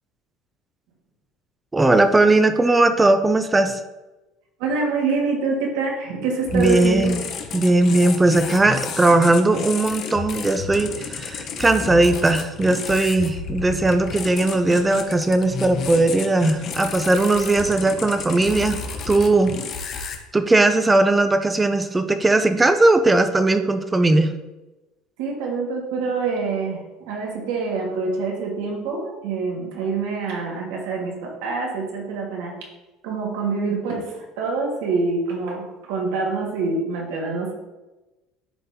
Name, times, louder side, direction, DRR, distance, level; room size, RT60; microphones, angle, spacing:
voice 1, 1.7-3.8 6.5-7.2 7.5-18.8 19.1-19.5 19.9-24.3, right 2 dB, 10° right, 9 dB, 0.4 m, -18 dB
voice 2, 4.6-7.2 25.2-32.5 33.0-37.5, right 4 dB, 90° right, -1 dB, 1.8 m, -26 dB
sound 1, 6.5-20.2, left 5 dB, 40° left, 0.8 m, -32 dB
11.0 x 3.9 x 2.8 m, 1.1 s
cardioid pair, 155°, 0 cm